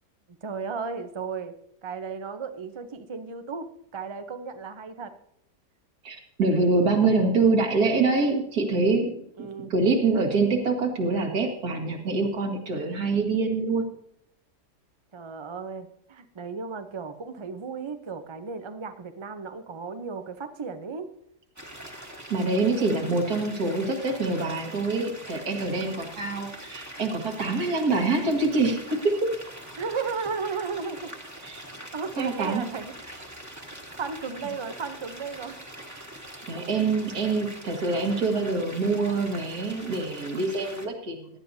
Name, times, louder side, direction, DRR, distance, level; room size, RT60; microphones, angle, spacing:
voice 1, 0.4-1.5 1.8-5.1 9.4-9.7 15.1-21.1 29.8-31.1 31.9-33.2 34.0-35.7, right 5 dB, 40° right, 8 dB, 0.4 m, -35 dB
voice 2, 6.0-13.9 22.3-29.3 31.4-31.6 32.2-32.6 36.5-41.3, right 3 dB, 70° right, 1 dB, 2.2 m, -25 dB
sound 1, 21.6-40.9, right 1 dB, 10° right, 1.3 m, -43 dB
16.5 x 11.0 x 2.7 m, 0.70 s
omnidirectional pair, 1.7 m